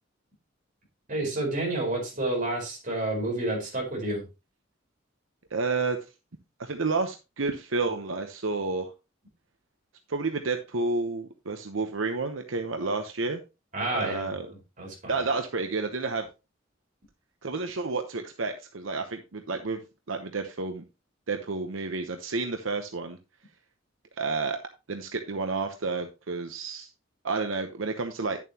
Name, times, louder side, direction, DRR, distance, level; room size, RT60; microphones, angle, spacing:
voice 1, 1.1-4.2 13.7-14.4 14.8-15.1, right 2 dB, 40° right, 4.8 m, -29 dB
voice 2, 5.5-6.0 6.6-8.9 10.1-13.4 13.9-14.5 15.1-16.3 17.4-19.8 20.1-20.8 21.3-23.2 24.2-24.6 24.9-26.9 27.2-28.4, right 3 dB, 85° right, 0.9 m, -30 dB
10.5 x 7.3 x 2.9 m
head